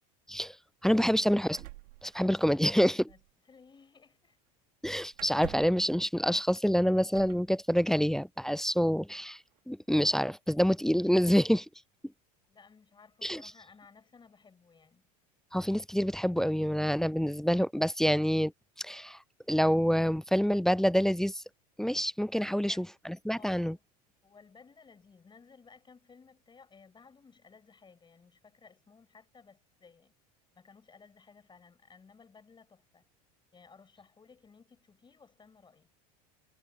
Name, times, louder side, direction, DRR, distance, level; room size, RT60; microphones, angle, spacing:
voice 1, 0.8-1.6 2.0-3.0 4.8-9.4 9.7-11.7 13.2-13.4 15.5-18.5 18.8-19.2 19.5-21.4 21.8-23.7, equal, ahead, 0.4 m, -27 dB
sound 1, 1.5-2.8 3.1-3.3 5.1-5.9 7.1-7.5 8.6-8.7 9.1-9.6, right 20 dB, 75° right, 2.6 m, -47 dB
voice 2, 2.5-4.4 12.5-15.0 22.5-22.9 23.3-23.8 24.2-30.1 30.5-33.0 33.5-35.9, left 5 dB, 25° left, 5.4 m, -58 dB
hypercardioid pair, 90°, 20 cm